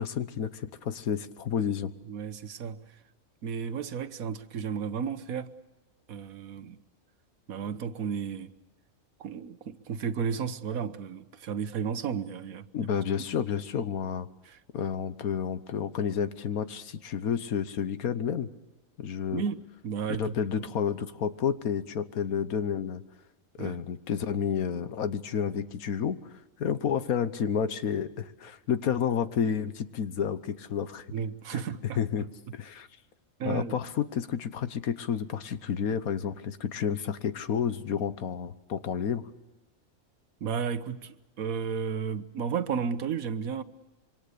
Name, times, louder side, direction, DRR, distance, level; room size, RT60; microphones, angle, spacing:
voice 1, 0.0-1.9 12.7-14.3 14.7-18.5 19.0-19.4 20.2-23.0 23.6-26.2 26.6-31.1 32.0-32.3 32.5-32.9 33.4-39.2, left 7 dB, 85° left, 1.5 m, -30 dB
voice 2, 2.1-2.8 3.4-5.5 6.1-6.8 7.5-8.5 9.2-12.9 14.5-14.6 19.3-20.7 23.6-23.8 31.1-32.0 33.4-33.8 40.4-43.6, right 6 dB, 80° right, 1.5 m, -33 dB
26.5 x 24.0 x 6.8 m
omnidirectional pair, 1.5 m